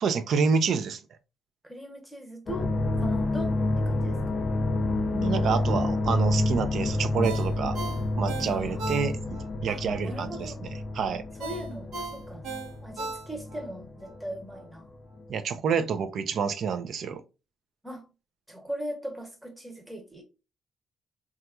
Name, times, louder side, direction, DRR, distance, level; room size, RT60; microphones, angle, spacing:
voice 1, 0.0-1.0 5.1-7.8 8.2-9.2 9.6-10.5 10.9-11.2 15.3-17.2, right 6 dB, 65° right, 0.4 m, -28 dB
voice 2, 1.6-2.7 3.0-4.4 8.5-8.8 9.7-10.6 11.4-12.4 12.8-14.9 17.8-18.0 18.5-20.2, right 1 dB, 5° right, 0.9 m, -39 dB
sound 1, 2.5-14.6 14.8-15.3, left 2 dB, 45° left, 0.4 m, -29 dB
Ringtone, 7.2-9.5 9.9-10.0 11.4-13.7 14.0-14.1, right 3 dB, 80° right, 0.9 m, -37 dB
2.9 x 2.3 x 2.2 m
cardioid pair, 90°, 0 cm